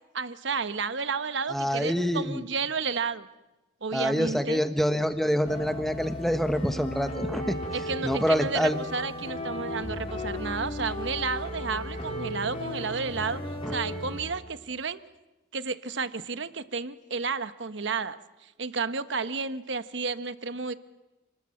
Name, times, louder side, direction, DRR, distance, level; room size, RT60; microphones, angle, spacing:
voice 1, 0.1-3.3 3.8-4.6 7.7-13.4 13.7-15.0 15.5-20.7, right 4 dB, 65° right, 12 dB, 1.0 m, -32 dB
voice 2, 1.5-2.5 3.9-7.6 8.0-8.8 13.6-13.8, equal, ahead, 8 dB, 1.2 m, -26 dB
sound 1, 5.5-14.2, left 1 dB, 30° left, 4.8 m, -35 dB
29.5 x 20.0 x 7.6 m, 1.1 s
head